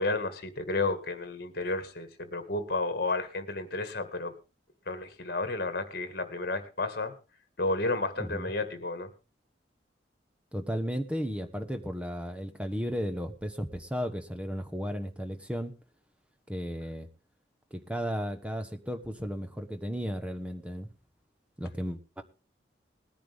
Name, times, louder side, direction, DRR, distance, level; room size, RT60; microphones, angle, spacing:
voice 1, 0.0-4.3 4.9-7.1 7.6-9.1, left 2 dB, 60° left, 10 dB, 1.8 m, -32 dB
voice 2, 8.2-8.5 10.5-15.7 16.5-17.1 17.7-20.9 21.6-22.2, equal, 5° right, 8 dB, 1.1 m, -34 dB
19.5 x 10.5 x 3.5 m, 0.31 s
head